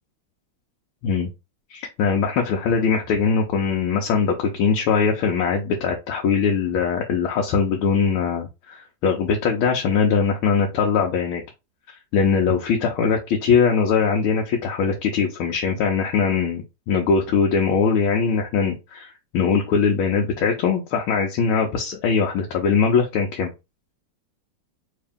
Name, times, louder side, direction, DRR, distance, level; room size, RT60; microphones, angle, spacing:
voice 1, 1.7-11.4 12.1-23.5, left 6 dB, 80° left, 0 dB, 1.6 m, -21 dB
3.6 x 2.8 x 3.5 m, 0.25 s
omnidirectional pair, 2.3 m